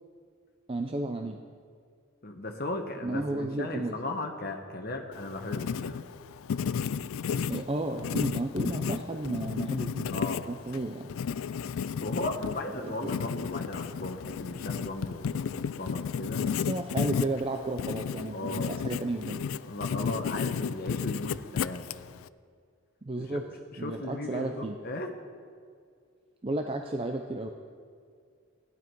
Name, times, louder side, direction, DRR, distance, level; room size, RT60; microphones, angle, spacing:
voice 1, 0.7-1.4 3.0-4.0 7.5-11.1 12.8-13.0 16.4-19.4 23.0-23.4 23.8-24.8 26.4-27.5, right 2 dB, 25° right, 4 dB, 0.5 m, -33 dB
voice 2, 2.2-6.0 10.1-10.5 11.8-16.4 18.3-18.7 19.6-21.9 23.2-23.4 23.7-25.1, left 2 dB, 45° left, 4 dB, 1.1 m, -36 dB
Writing, 5.1-22.3, left 6 dB, 75° left, 0.3 m, -33 dB
16.5 x 11.0 x 4.6 m, 2.2 s
head